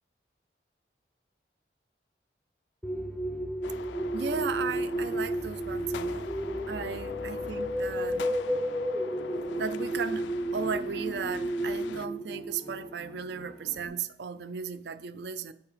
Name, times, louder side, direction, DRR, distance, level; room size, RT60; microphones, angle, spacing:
sound 1, 2.8-13.9, right 1 dB, 5° left, 0.4 m, -33 dB
sound 2, 3.6-12.1, left 6 dB, 85° left, 0.3 m, -44 dB
voice 1, 4.1-6.3 6.7-8.3 9.6-10.2 10.5-15.5, right 6 dB, 70° right, 0.4 m, -35 dB
7.1 x 4.5 x 4.9 m
head